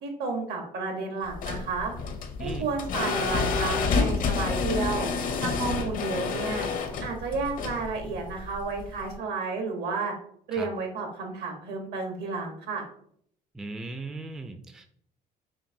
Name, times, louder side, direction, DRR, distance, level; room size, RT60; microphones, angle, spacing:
voice 1, 0.0-1.9 2.4-5.1 5.4-6.7 7.0-10.1 10.5-12.8, right 4 dB, 75° right, 3 dB, 1.1 m, -32 dB
sound 1, 1.3-9.1, left 4 dB, 55° left, 0.6 m, -29 dB
voice 2, 13.5-14.9, right 2 dB, 5° right, 6 dB, 0.3 m, -38 dB
4.6 x 2.8 x 2.6 m, 0.64 s
cardioid pair, 110°, 17 cm